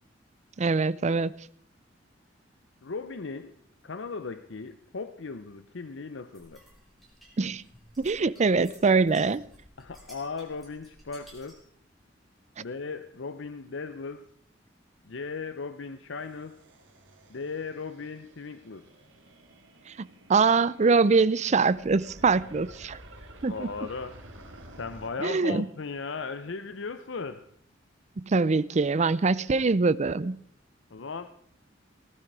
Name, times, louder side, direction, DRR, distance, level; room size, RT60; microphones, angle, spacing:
voice 1, 0.6-1.3 7.4-7.6 8.0-9.4 20.0-23.0 23.4-23.7 25.2-25.7 28.2-30.4, right 4 dB, 40° right, 0.5 m, -23 dB
voice 2, 2.8-3.6 3.8-6.6 9.8-11.6 12.6-14.3 15.0-16.6 17.3-18.8 23.4-24.2 24.7-27.5 30.9-31.3, left 4 dB, 75° left, 0.7 m, -37 dB
sound 1, 6.3-11.7, right 1 dB, ahead, 5.3 m, -55 dB
sound 2, 16.2-25.1, right 1 dB, 85° right, 2.2 m, -51 dB
19.0 x 12.0 x 4.7 m
head